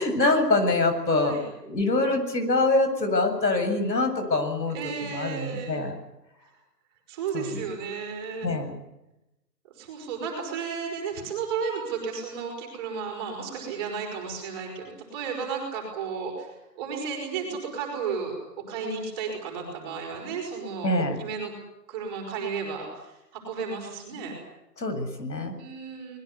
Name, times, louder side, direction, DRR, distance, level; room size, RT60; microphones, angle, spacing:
voice 1, 0.0-4.8 5.1-6.0 7.3-7.6 8.4-8.8 20.8-21.2 24.8-25.5, left 2 dB, 90° left, 7 dB, 7.5 m, -25 dB
voice 2, 1.1-1.5 4.7-5.8 7.1-8.5 9.8-18.4 18.7-20.9 21.2-21.5 21.9-24.4 25.6-26.2, right 5 dB, 15° right, 0 dB, 5.3 m, -33 dB
24.5 x 21.0 x 8.2 m, 0.92 s
hypercardioid pair, 175°, 50 cm